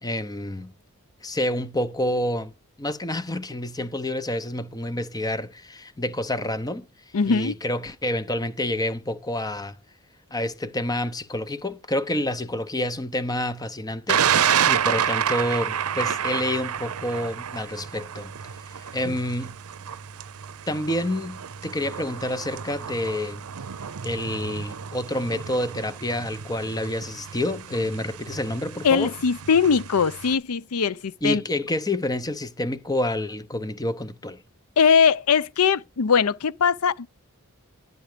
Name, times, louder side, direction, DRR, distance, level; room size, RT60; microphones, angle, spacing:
voice 1, 0.0-0.7 1.2-2.5 2.8-6.8 7.3-9.8 10.3-18.3 18.8-19.6 20.7-23.4 24.0-29.1 31.2-34.4, left 1 dB, 15° left, 0.8 m, -28 dB
voice 2, 7.1-7.5 19.0-19.1 28.8-31.4 34.8-37.1, left 6 dB, 80° left, 0.6 m, -21 dB
Thunder, 14.1-30.3, right 8 dB, 75° right, 0.6 m, -29 dB
11.5 x 9.4 x 5.0 m
head